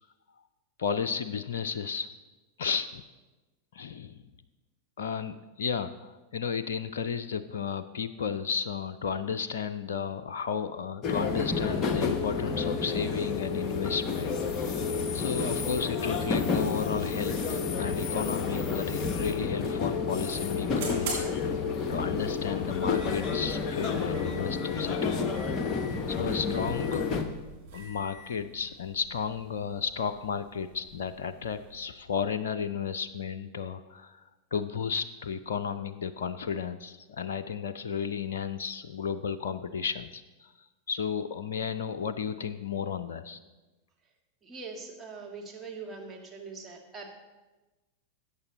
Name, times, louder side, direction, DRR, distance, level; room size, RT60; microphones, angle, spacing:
voice 1, 0.8-2.1 2.6-3.0 3.7-4.2 5.0-14.8 15.1-21.5 21.9-25.3 26.1-27.0 27.7-34.2 34.5-40.5 40.9-43.4, left 6 dB, 60° left, 10 dB, 0.4 m, -33 dB
sound 1, 11.0-27.2, left 5 dB, 30° left, 1.0 m, -30 dB
sound 2, 19.6-32.0, right 2 dB, 55° right, 3.6 m, -45 dB
voice 2, 44.4-47.1, right 4 dB, 15° right, 0 dB, 1.9 m, -42 dB
13.5 x 8.7 x 3.9 m, 1.1 s
figure-of-eight pair, 90°, 0 cm